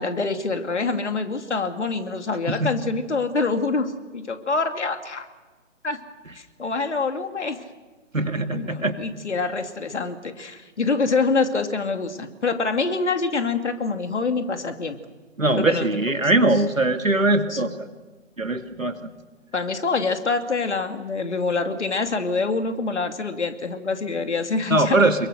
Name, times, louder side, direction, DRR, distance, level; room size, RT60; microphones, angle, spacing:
voice 1, 0.0-5.3 5.8-6.0 6.3-7.6 8.5-15.0 15.6-15.9 16.2-16.3 17.5-17.6 19.5-25.0, left 4 dB, 60° left, 7 dB, 2.5 m, -25 dB
voice 2, 8.1-9.0 15.4-17.9 18.4-19.0 24.7-25.3, right 2 dB, 90° right, 8 dB, 2.2 m, -21 dB
27.5 x 22.5 x 6.6 m, 1.3 s
figure-of-eight pair, 145°, 38 cm